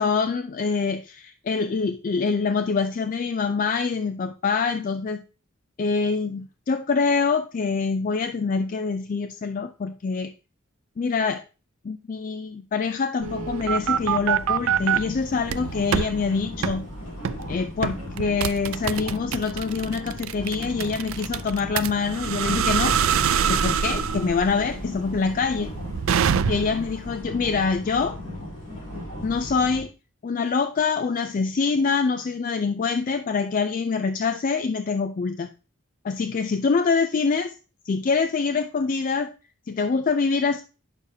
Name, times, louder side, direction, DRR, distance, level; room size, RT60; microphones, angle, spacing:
voice 1, 0.0-5.2 5.8-10.3 11.0-11.4 11.8-16.8 17.5-23.0 23.5-25.7 26.5-28.2 29.2-29.9 30.2-35.5 36.0-37.5 37.8-39.3 39.7-40.6, left 5 dB, 40° left, 9 dB, 0.3 m, -25 dB
sound 1, 13.2-29.8, left 1 dB, 60° left, 3.3 m, -37 dB
sound 2, 13.2-15.0 15.5-16.1 16.6-16.8 17.2-17.5 17.8-26.9, right 8 dB, 65° right, 0.4 m, -25 dB
9.8 x 6.5 x 2.7 m, 0.34 s
head